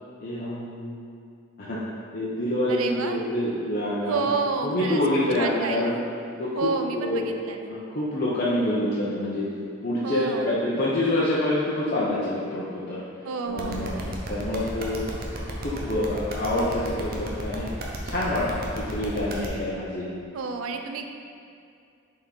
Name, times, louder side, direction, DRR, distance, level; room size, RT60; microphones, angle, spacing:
voice 1, 0.2-1.0 1.6-1.8 2.1-4.2 4.6-5.9 6.4-7.2 7.7-9.5 9.8-13.0 13.5-15.0 15.6-17.7 18.0-18.5 18.8-20.1, left 1 dB, 45° left, -9 dB, 0.8 m, -27 dB
voice 2, 2.7-3.2 4.0-5.0 5.3-6.0 6.6-7.7 10.0-10.6 13.2-14.1 20.3-21.0, right 4 dB, 90° right, 5 dB, 0.5 m, -30 dB
sound 1, 13.6-19.5, right 1 dB, 45° right, 0.7 m, -35 dB
5.8 x 4.2 x 4.0 m, 2.4 s
head